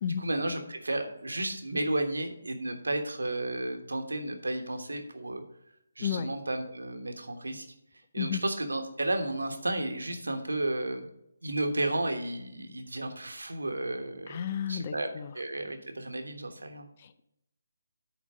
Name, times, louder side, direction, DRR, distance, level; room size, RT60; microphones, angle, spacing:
voice 1, 0.2-5.4 6.0-7.7 8.1-11.1 11.4-14.4 14.7-16.9, right 1 dB, 75° right, 5 dB, 1.2 m, -33 dB
voice 2, 6.0-6.3 8.2-8.4 14.3-15.3 17.0-17.2, left 8 dB, 35° left, 12 dB, 0.5 m, -32 dB
9.1 x 3.9 x 6.1 m, 0.81 s
figure-of-eight pair, 145°, 0 cm